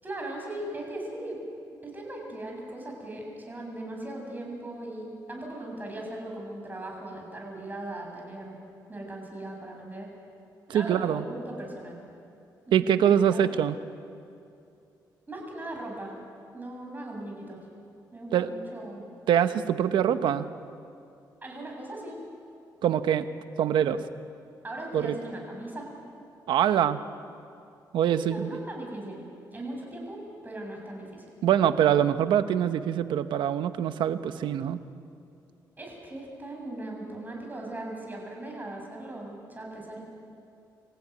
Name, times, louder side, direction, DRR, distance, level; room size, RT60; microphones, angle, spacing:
voice 1, 0.0-1.4 1.8-8.6 8.9-10.1 10.7-12.0 12.7-13.5 15.3-16.1 16.5-17.6 18.1-19.0 21.4-22.2 24.6-25.9 28.1-29.2 29.5-31.3 35.8-40.0, right 1 dB, 20° right, 0 dB, 7.7 m, -39 dB
voice 2, 10.7-11.2 12.7-13.8 18.3-18.5 19.3-20.5 22.8-23.3 23.6-24.0 24.9-25.1 26.5-27.0 27.9-28.5 31.4-34.8, right 9 dB, 85° right, 11 dB, 1.0 m, -24 dB
26.0 x 15.5 x 9.6 m, 2.5 s
cardioid pair, 85°, 8 cm